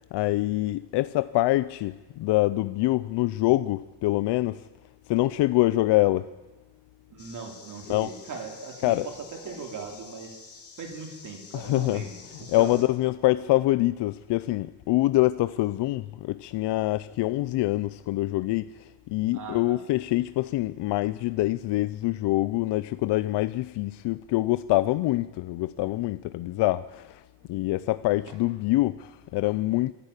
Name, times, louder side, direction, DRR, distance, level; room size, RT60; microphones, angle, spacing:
voice 1, 0.0-4.7 5.1-6.3 7.9-8.1 8.8-9.1 11.5-12.0 12.5-27.2 27.5-29.9, left 17 dB, 75° left, 0.6 m, -25 dB
voice 2, 7.1-9.2 9.4-10.4 10.8-12.8 19.3-19.8 27.6-27.7 28.3-28.4, right 5 dB, 45° right, 3.2 m, -39 dB
sound 1, 7.2-12.8, left 5 dB, 35° left, 2.7 m, -49 dB
24.0 x 11.5 x 9.8 m
cardioid pair, 170°, 41 cm